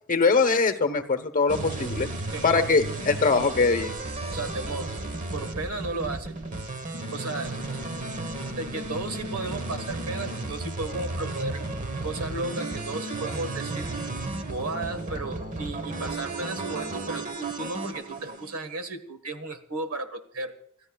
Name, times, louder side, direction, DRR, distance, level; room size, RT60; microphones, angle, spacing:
voice 1, 0.1-2.1 2.4-3.9, left 4 dB, 40° left, 10 dB, 1.0 m, -22 dB
sound 1, 1.5-18.6, right 2 dB, 35° right, 1.2 m, -34 dB
voice 2, 2.3-2.7 4.3-4.9 5.3-6.3 7.1-7.7 8.6-11.6 12.0-13.9 14.4-20.5, right 2 dB, 80° right, 9 dB, 1.5 m, -34 dB
30.0 x 13.5 x 2.3 m, 0.69 s
head